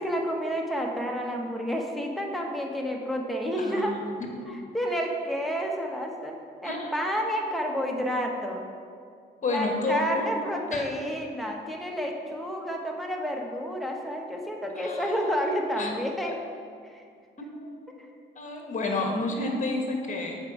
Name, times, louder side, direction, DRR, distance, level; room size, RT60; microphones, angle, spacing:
voice 1, 0.0-4.0 4.5-6.3 6.6-8.6 9.5-16.4 16.8-17.0 18.0-18.1, equal, ahead, 0 dB, 1.1 m, -30 dB
voice 2, 3.6-4.0 6.6-6.9 9.4-10.3 10.7-10.8 14.8-15.5 15.8-15.9 17.4-18.0 18.3-20.4, left 2 dB, 40° left, 2 dB, 1.4 m, -31 dB
7.4 x 4.8 x 4.9 m, 2.2 s
cardioid pair, 90°, 20 cm